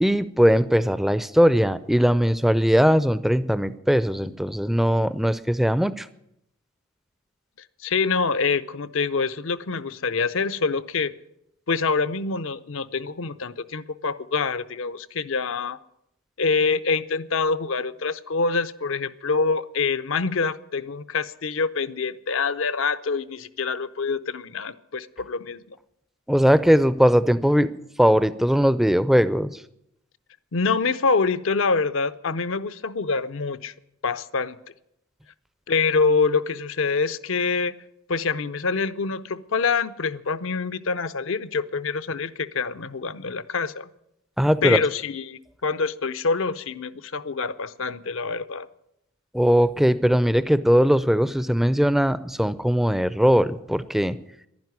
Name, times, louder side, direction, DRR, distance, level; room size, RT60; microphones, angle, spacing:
voice 1, 0.0-6.1 26.3-27.7 28.0-29.5 44.4-44.8 49.3-54.2, equal, ahead, 15 dB, 0.4 m, -20 dB
voice 2, 7.8-11.1 11.7-15.8 16.4-25.8 30.5-33.7 34.0-34.6 35.7-37.7 38.1-43.9 44.6-48.7, left 4 dB, 65° left, 12 dB, 0.6 m, -25 dB
11.5 x 10.5 x 9.5 m, 0.79 s
head